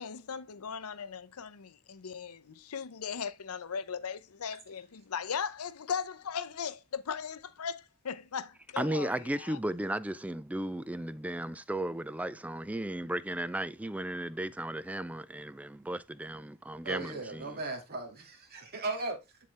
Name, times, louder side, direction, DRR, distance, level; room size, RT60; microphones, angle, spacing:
voice 1, 0.0-9.6, left 6 dB, 85° left, 0.6 m, -38 dB
voice 2, 8.8-17.6, right 1 dB, 5° right, 0.3 m, -35 dB
voice 3, 16.8-19.5, right 2 dB, 45° right, 2.2 m, -37 dB
10.5 x 4.3 x 3.3 m
head